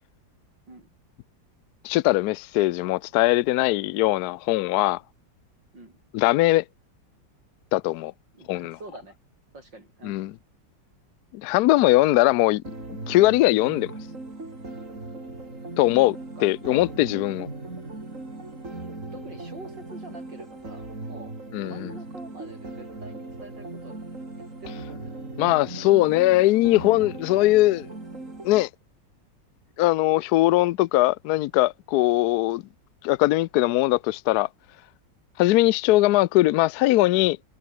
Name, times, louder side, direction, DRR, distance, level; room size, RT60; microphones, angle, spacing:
voice 1, 1.8-5.0 6.1-6.6 7.7-8.1 8.5-8.8 10.0-10.3 11.3-12.6 13.1-13.9 15.8-16.2 16.4-17.5 21.5-21.9 25.4-27.9 28.4-28.7 29.8-32.6 33.0-34.5 35.4-37.4, left 17 dB, 75° left, 0.9 m, -20 dB
voice 2, 8.3-9.2 9.5-10.3 16.2-16.5 19.1-24.0 24.4-25.2, right 2 dB, 65° right, 7.9 m, -46 dB
sound 1, 12.6-28.6, right 2 dB, 40° right, 5.2 m, -38 dB
omnidirectional pair, 2.1 m